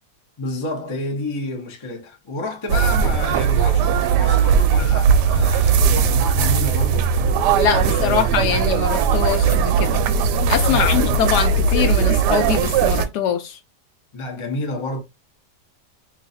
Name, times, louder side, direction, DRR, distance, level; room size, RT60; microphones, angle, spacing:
voice 1, 0.4-7.5 7.8-8.4 10.6-11.2 14.1-15.0, left 2 dB, 35° left, 0.4 m, -30 dB
sound 1, 2.7-13.1, right 6 dB, 75° right, 1.1 m, -18 dB
voice 2, 7.6-10.0 10.5-13.6, left 8 dB, 75° left, 1.1 m, -23 dB
3.1 x 2.4 x 4.0 m
omnidirectional pair, 1.9 m